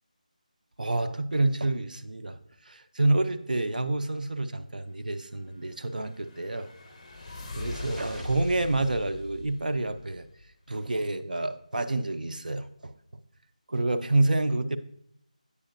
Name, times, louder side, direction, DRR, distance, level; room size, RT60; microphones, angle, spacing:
voice 1, 0.8-2.4 2.7-6.7 7.5-10.3 10.7-12.9 13.7-14.8, right 2 dB, 85° right, 9 dB, 0.5 m, -28 dB
sound 1, 5.6-10.5, left 2 dB, 30° left, 0.9 m, -42 dB
8.3 x 5.1 x 2.6 m, 0.71 s
figure-of-eight pair, 170°, 4 cm